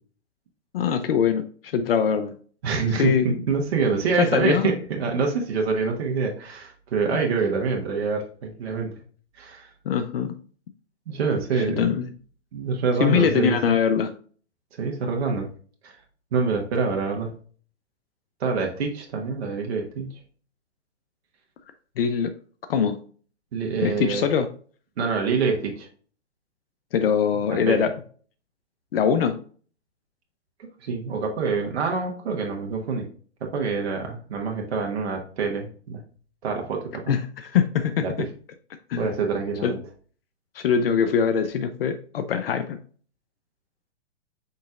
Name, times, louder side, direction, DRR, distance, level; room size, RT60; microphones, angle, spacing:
voice 1, 0.7-2.3 3.0-3.4 4.1-4.7 9.8-10.4 11.6-12.1 13.0-14.1 22.0-22.3 22.7-23.0 23.8-24.5 26.9-28.0 28.9-29.4 37.1-38.3 38.9-39.1 39.6-39.8 40.5-42.8, left 7 dB, 55° left, 10 dB, 0.6 m, -23 dB
voice 2, 2.6-8.9 9.3-9.7 11.1-12.0 12.5-13.6 14.7-15.5 15.8-16.0 16.3-17.3 18.4-20.2 23.5-24.3 25.0-25.9 27.6-27.8 30.8-33.1 33.4-36.0 36.4-37.1 38.0-38.1 39.0-39.8, right 4 dB, 65° right, 1 dB, 1.3 m, -26 dB
5.4 x 3.9 x 2.4 m, 0.43 s
hypercardioid pair, 135°, 35 cm